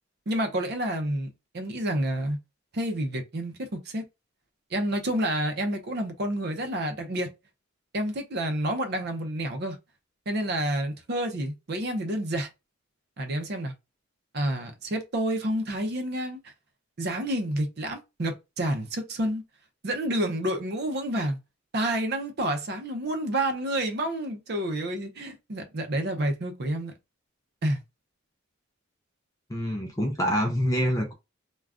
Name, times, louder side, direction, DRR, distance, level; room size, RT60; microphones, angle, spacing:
voice 1, 0.3-2.4 2.7-4.0 4.7-7.3 7.9-9.8 10.3-12.5 13.2-13.7 14.3-16.5 17.0-19.4 19.8-21.4 21.7-26.9 27.6-27.8, right 1 dB, 50° right, 0.6 m, -29 dB
voice 2, 29.5-31.1, equal, 15° left, 0.5 m, -26 dB
2.4 x 2.2 x 3.4 m
head